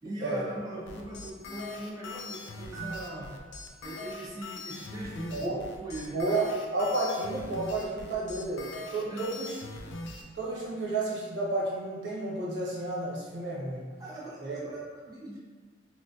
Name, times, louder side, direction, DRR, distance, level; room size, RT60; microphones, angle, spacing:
voice 1, 0.0-3.3 3.8-5.5 5.8-6.2 9.0-9.3 14.0-15.4, right 1 dB, 20° right, -5 dB, 0.3 m, -40 dB
sound 1, 0.9-10.2, left 3 dB, 85° left, 0.4 m, -41 dB
Piano, 2.7-4.8, right 6 dB, 5° right, 0.9 m, -47 dB
voice 2, 6.1-8.6 8.9-9.5 10.3-13.9 14.4-14.6, right 2 dB, 80° right, -5 dB, 0.9 m, -31 dB
3.0 x 2.2 x 2.6 m, 1.5 s
head